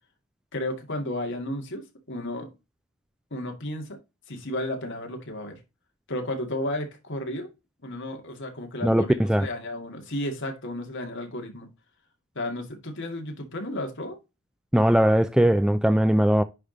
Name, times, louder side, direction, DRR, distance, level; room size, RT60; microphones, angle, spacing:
voice 1, 0.5-2.5 3.3-4.0 4.3-5.6 6.1-7.5 7.8-11.7 12.4-14.2, left 1 dB, 55° left, 2.1 m, -33 dB
voice 2, 8.8-9.5 14.7-16.4, right 1 dB, 5° right, 0.3 m, -20 dB
10.0 x 3.4 x 3.9 m
head